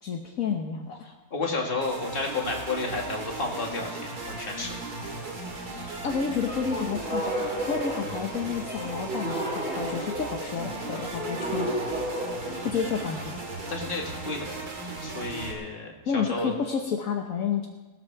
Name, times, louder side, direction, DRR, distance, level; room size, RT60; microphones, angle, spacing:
voice 1, 0.0-1.0 6.0-7.4 7.7-11.7 12.6-13.3 16.1-17.7, left 6 dB, 65° left, 2 dB, 1.5 m, -30 dB
voice 2, 1.3-4.8 12.4-12.7 13.7-14.6 15.0-16.5, left 3 dB, 35° left, 0 dB, 2.2 m, -32 dB
sound 1, 1.8-15.5, right 2 dB, 85° right, 2.8 m, -37 dB
sound 2, 6.4-13.2, right 1 dB, 5° right, 4.6 m, -33 dB
18.5 x 13.0 x 4.7 m, 1.2 s
omnidirectional pair, 1.6 m